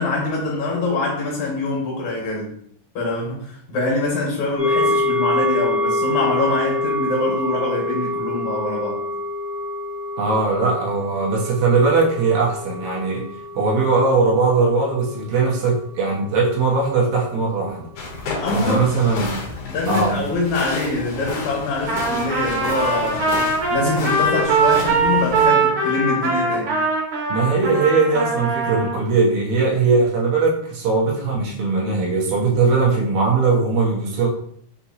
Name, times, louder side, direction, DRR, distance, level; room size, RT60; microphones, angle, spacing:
voice 1, 0.0-2.6 2.9-9.0 18.4-18.9 19.6-23.3 23.7-26.8, left 2 dB, 70° left, -3 dB, 2.5 m, -24 dB
sound 1, 4.6-16.2 16.6-16.7, left 2 dB, 20° right, 0.9 m, -26 dB
voice 2, 10.2-13.2 13.5-17.9 18.5-19.3 19.9-20.2 27.3-34.3, right 4 dB, 80° right, -4 dB, 2.3 m, -19 dB
sound 2, 18.0-25.5, left 3 dB, 85° left, 2.4 m, -31 dB
Trumpet, 21.9-29.0, right 3 dB, 60° right, 1.6 m, -21 dB
5.8 x 2.8 x 2.7 m, 0.66 s
omnidirectional pair, 3.4 m